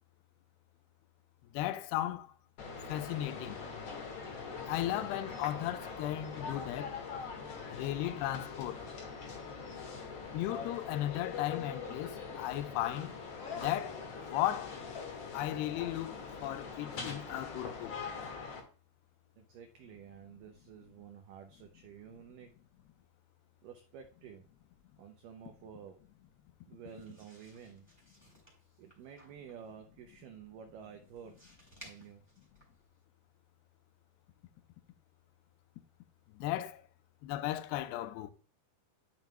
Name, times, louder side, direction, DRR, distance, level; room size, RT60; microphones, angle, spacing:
voice 1, 1.5-2.3 2.9-3.6 4.7-6.9 7.7-8.8 10.3-13.1 13.6-14.0 14.3-14.7 15.3-16.2 16.4-17.9 36.4-36.8 37.2-38.3, left 14 dB, 85° left, 2.6 m, -35 dB
sound 1, 2.6-18.6, left 5 dB, 50° left, 2.1 m, -43 dB
voice 2, 19.4-22.5 23.6-24.5 25.0-26.0 26.7-27.9 28.8-32.2, right 7 dB, 90° right, 1.8 m, -51 dB
sound 2, 26.9-33.0, right 1 dB, 5° right, 3.2 m, -60 dB
10.5 x 7.1 x 2.3 m
omnidirectional pair, 4.8 m